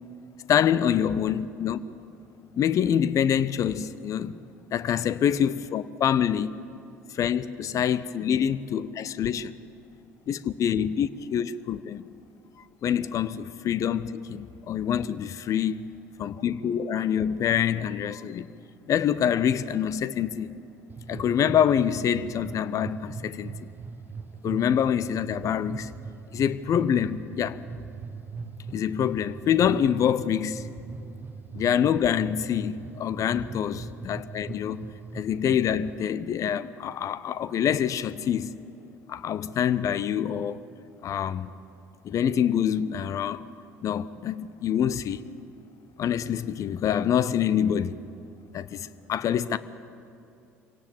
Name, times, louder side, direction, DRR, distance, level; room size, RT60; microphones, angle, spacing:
voice 1, 0.5-1.8 2.6-4.4 4.7-6.6 7.1-9.5 10.3-12.0 12.8-15.9 16.2-18.5 18.9-20.6 21.1-23.7 24.4-25.9 26.3-27.6 28.7-30.6 31.5-34.9 35.1-38.5 39.1-40.6 41.0-41.5 42.0-43.5 43.8-45.2 46.0-48.0 48.5-49.6, left 9 dB, 40° left, 0.7 m, -26 dB
sound 1, 20.9-36.0, right 4 dB, 25° right, 0.9 m, -40 dB
24.5 x 17.5 x 7.2 m
figure-of-eight pair, 60°, 8 cm